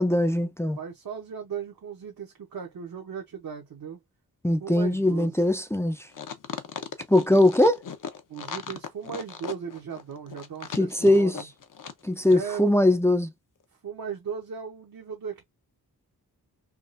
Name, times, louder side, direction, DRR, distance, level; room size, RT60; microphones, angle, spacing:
voice 1, 0.0-0.8 4.4-6.0 7.1-7.8 10.8-11.5 12.0-13.3, left 1 dB, 5° left, 0.4 m, -21 dB
voice 2, 0.8-4.0 4.6-5.3 8.3-11.5 12.3-12.6 13.8-15.5, right 7 dB, 65° right, 0.9 m, -37 dB
sound 1, 6.1-12.0 12.3-12.4, left 7 dB, 60° left, 0.7 m, -37 dB
3.6 x 2.3 x 2.5 m
wide cardioid pair, 80°, 36 cm